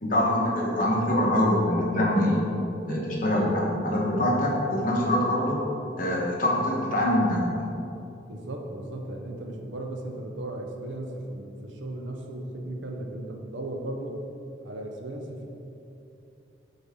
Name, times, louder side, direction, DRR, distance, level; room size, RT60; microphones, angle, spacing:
voice 1, 0.0-2.4 2.8-5.6 6.0-7.7, left 1 dB, 45° left, -3 dB, 1.1 m, -24 dB
voice 2, 8.3-14.2 14.6-15.5, right 1 dB, 80° right, 2 dB, 0.6 m, -36 dB
7.9 x 3.5 x 3.6 m, 2.8 s
head